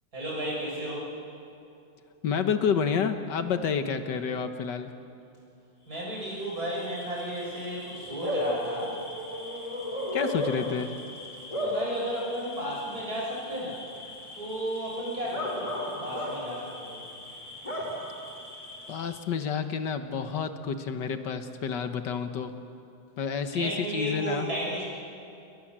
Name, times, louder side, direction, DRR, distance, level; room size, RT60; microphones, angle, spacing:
voice 1, 0.1-1.1 5.9-9.0 11.6-13.9 14.3-15.7 16.0-17.0 23.5-24.8, right 1 dB, 60° right, -4 dB, 7.4 m, -33 dB
voice 2, 2.2-4.9 10.1-10.9 18.9-22.5 23.2-24.5, left 6 dB, 80° left, 8 dB, 1.9 m, -29 dB
Bark / Cricket, 6.0-19.3, left 1 dB, 20° left, 4.6 m, -36 dB
29.0 x 21.5 x 7.5 m, 2.7 s
omnidirectional pair, 1.9 m